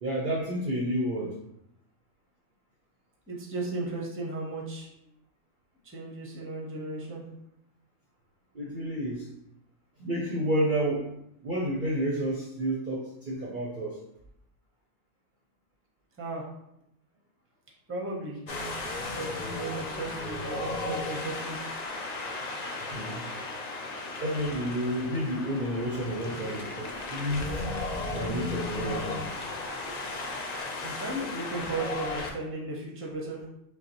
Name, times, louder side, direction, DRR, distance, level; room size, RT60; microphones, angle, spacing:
voice 1, 0.0-1.3 8.5-9.3 10.0-11.1 11.4-14.0 22.9-23.3 24.2-27.5 28.1-29.3, right 1 dB, 55° right, -3 dB, 0.6 m, -30 dB
voice 2, 3.3-4.9 5.8-7.2 16.2-16.4 17.9-18.4 19.1-21.6 30.8-33.5, right 2 dB, 15° right, -2 dB, 0.6 m, -35 dB
Wind, 18.5-32.3, left 2 dB, 65° left, 0.4 m, -35 dB
5.3 x 2.2 x 2.9 m, 0.79 s
omnidirectional pair, 1.3 m